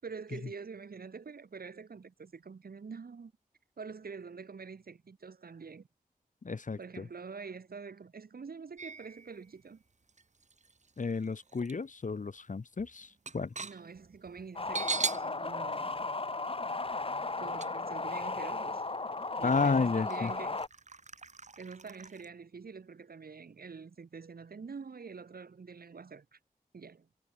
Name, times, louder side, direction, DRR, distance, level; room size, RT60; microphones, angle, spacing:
voice 1, 0.0-3.3 3.8-5.9 6.8-9.8 13.6-16.1 17.4-18.8 19.4-20.6 21.6-26.4 26.7-27.1, right 5 dB, 80° right, 5.2 m, -46 dB
voice 2, 6.4-7.1 11.0-13.1 13.3-13.5 19.4-20.3, left 4 dB, 55° left, 2.2 m, -31 dB
sound 1, 8.8-9.5 10.1-11.7 12.1-12.2 12.6-15.3 15.7-15.8 17.6-17.7 18.6-18.7 19.2-19.3 20.1-22.3, right 4 dB, 50° right, 2.2 m, -40 dB
sound 2, 14.6-20.7, left 3 dB, 35° left, 1.9 m, -35 dB
wide cardioid pair, 90°, 15 cm